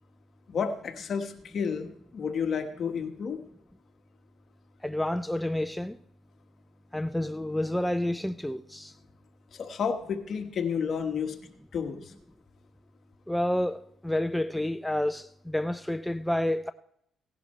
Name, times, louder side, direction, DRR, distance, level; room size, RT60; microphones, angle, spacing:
voice 1, 0.5-3.4 9.5-11.3 11.7-12.1, left 6 dB, 55° left, 1.3 m, -31 dB
voice 2, 4.8-6.0 6.9-8.9 13.3-16.7, left 1 dB, 5° left, 0.4 m, -29 dB
17.0 x 11.0 x 3.2 m
cardioid pair, 90°, 0 cm